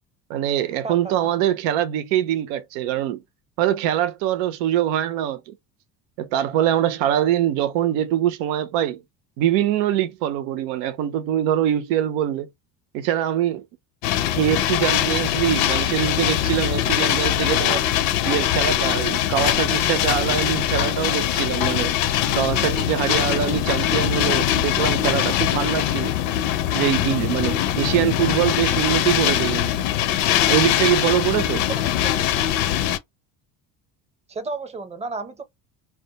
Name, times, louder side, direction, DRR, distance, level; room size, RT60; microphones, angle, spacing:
voice 1, 0.3-3.2 3.6-5.5 6.2-9.0 9.4-12.5 12.9-13.6 14.3-17.9 18.2-21.9 22.3-26.2 26.7-29.8 30.5-31.7, right 11 dB, 80° right, 0.6 m, -23 dB
sound 1, 14.0-33.0, left 11 dB, 80° left, 0.7 m, -22 dB
voice 2, 31.7-32.3 34.3-35.4, right 3 dB, 15° right, 0.7 m, -32 dB
2.2 x 2.2 x 2.8 m
supercardioid pair, 90°, 40 cm